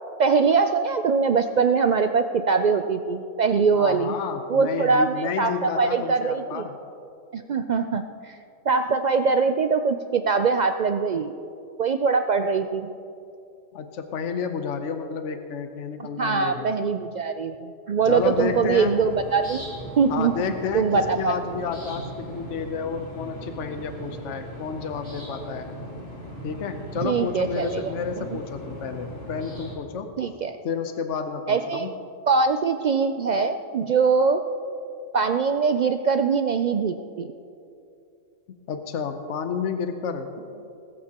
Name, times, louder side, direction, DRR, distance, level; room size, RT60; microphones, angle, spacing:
voice 1, 0.2-4.2 4.5-6.6 7.3-8.4 8.7-11.3 11.8-12.9 16.2-19.6 20.0-20.3 20.7-21.6 27.0-28.2 30.2-30.6 31.5-31.9 32.3-34.4 35.1-37.3, right 5 dB, 80° right, 8 dB, 0.4 m, -22 dB
voice 2, 3.7-6.8 13.7-16.7 18.1-19.0 20.1-25.7 26.4-30.1 30.6-31.9 38.7-40.3, left 6 dB, 70° left, 7 dB, 1.1 m, -30 dB
sound 1, 18.0-29.8, equal, 90° left, 3.9 m, -39 dB
20.0 x 14.0 x 2.9 m, 2.6 s
omnidirectional pair, 1.3 m